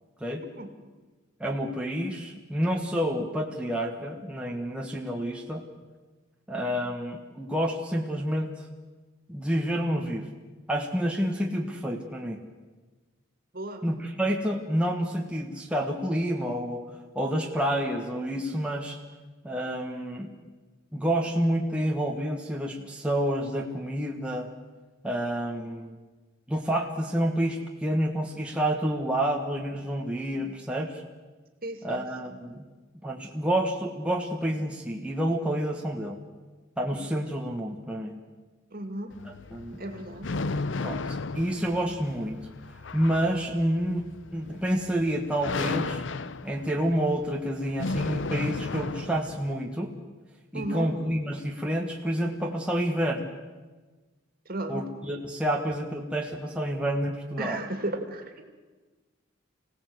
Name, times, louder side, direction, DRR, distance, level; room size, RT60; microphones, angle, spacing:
voice 1, 1.4-5.6 6.5-8.5 9.3-10.3 10.7-12.4 13.8-16.8 17.1-19.0 19.4-20.3 20.9-24.5 25.0-26.0 26.5-31.0 31.8-32.7 33.0-36.2 36.8-38.1 39.2-39.8 40.8-42.4 42.9-46.0 46.4-49.9 50.5-53.4 54.7-57.6, equal, 5° right, 0 dB, 1.5 m, -29 dB
voice 2, 31.6-32.0 38.7-39.1 39.8-40.3 50.5-50.9 54.5-54.8 57.4-58.4, right 1 dB, 45° right, 7 dB, 2.4 m, -34 dB
sound 1, 39.1-49.5, left 3 dB, 65° left, 0.7 m, -34 dB
25.5 x 17.5 x 8.0 m, 1.3 s
head